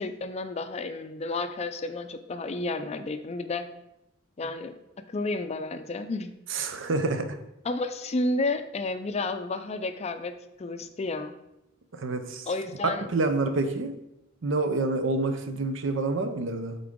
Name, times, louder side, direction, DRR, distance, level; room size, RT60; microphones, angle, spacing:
voice 1, 0.0-3.6 4.4-4.7 5.1-6.3 7.6-10.3 10.6-11.3 12.5-13.1, left 2 dB, 35° left, 9 dB, 0.4 m, -31 dB
voice 2, 6.5-7.4 11.9-12.5 12.8-14.0 14.4-16.8, right 3 dB, 70° right, 8 dB, 0.6 m, -28 dB
8.4 x 3.9 x 3.6 m, 0.87 s
head